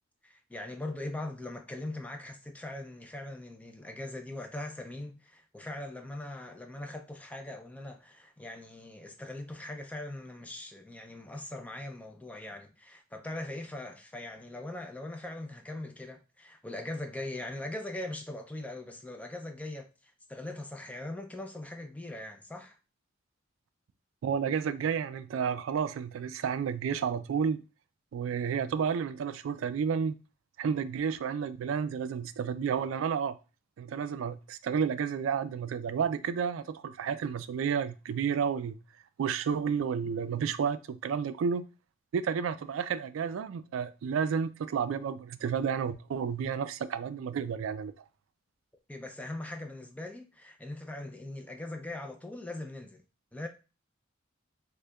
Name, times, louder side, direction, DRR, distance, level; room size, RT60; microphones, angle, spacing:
voice 1, 0.2-22.8 48.9-53.0 53.3-53.5, left 1 dB, 5° left, 0.3 m, -41 dB
voice 2, 24.2-27.6 28.1-30.2 30.6-33.4 33.8-38.8 39.2-41.7 42.1-48.0, right 7 dB, 80° right, 0.3 m, -31 dB
6.2 x 2.2 x 2.2 m
head